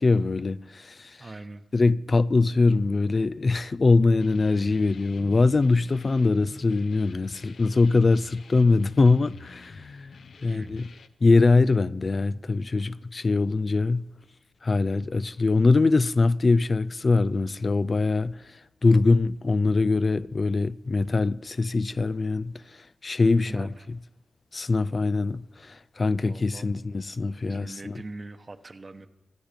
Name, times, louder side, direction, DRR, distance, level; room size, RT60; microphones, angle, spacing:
voice 1, 0.0-1.2 1.7-10.1 10.4-10.9 11.2-14.0 14.6-23.7 24.5-28.0, left 3 dB, 40° left, 0.4 m, -23 dB
voice 2, 1.2-1.6 10.5-10.8 23.4-23.9 26.2-26.7 27.5-29.1, right 2 dB, 35° right, 1.1 m, -42 dB
sound 1, 4.2-11.1, left 4 dB, 70° left, 0.8 m, -47 dB
25.5 x 8.8 x 5.2 m
cardioid pair, 65°, 0 cm